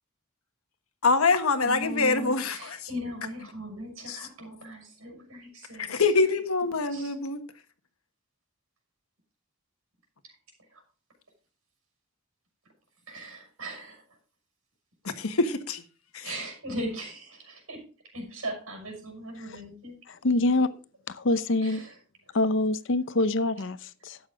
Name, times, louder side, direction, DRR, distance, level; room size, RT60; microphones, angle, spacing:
voice 1, 1.0-2.8 5.8-7.4 15.0-15.8 16.1-16.2, left 3 dB, 90° left, 1.4 m, -25 dB
voice 2, 1.6-6.1 6.9-7.1 10.2-10.3 10.7-10.8 13.1-14.2 16.2-19.9 21.6-22.0 22.3-22.4, right 1 dB, 85° right, 6.2 m, -39 dB
voice 3, 20.2-20.7 21.1-21.8 22.3-24.2, left 2 dB, 60° left, 0.7 m, -25 dB
12.5 x 8.7 x 3.8 m
head